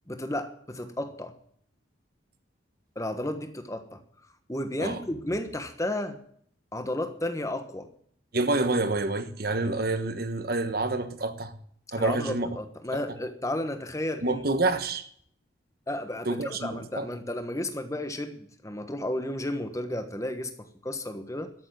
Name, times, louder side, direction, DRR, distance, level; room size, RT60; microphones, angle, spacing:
voice 1, 0.1-1.3 2.9-4.0 4.5-6.2 6.7-7.9 12.0-14.4 15.9-21.5, left 1 dB, 15° left, 1.2 m, -33 dB
voice 2, 8.3-11.5 11.9-12.6 12.9-13.0 14.2-15.0 16.2-17.1, right 2 dB, 50° right, 1.2 m, -28 dB
13.5 x 7.1 x 9.2 m
head